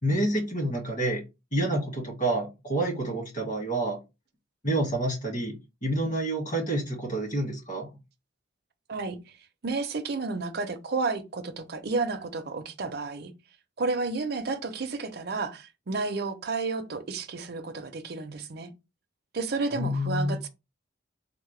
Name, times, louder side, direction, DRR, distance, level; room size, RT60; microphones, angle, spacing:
voice 1, 0.0-1.2 1.5-4.0 4.6-5.5 5.8-7.9 19.7-20.4, right 1 dB, 40° left, 1.6 m, -28 dB
voice 2, 9.6-13.3 13.8-18.7 19.3-20.5, right 3 dB, 55° right, 0.5 m, -31 dB
3.6 x 2.1 x 3.1 m
head